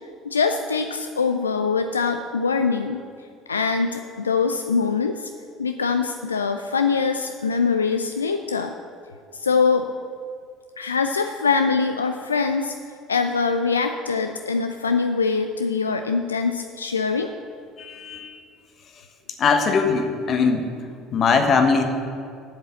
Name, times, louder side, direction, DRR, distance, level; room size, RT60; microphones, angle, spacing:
voice 1, 0.3-3.0 3.5-5.3 5.6-8.7 9.3-9.9 10.8-12.7 13.1-17.3, left 5 dB, 80° left, 7 dB, 0.3 m, -23 dB
voice 2, 17.8-18.4 19.4-20.7 21.1-21.8, left 5 dB, 40° left, 6 dB, 1.2 m, -20 dB
7.7 x 7.3 x 7.2 m, 2.3 s
figure-of-eight pair, 60°, 0 cm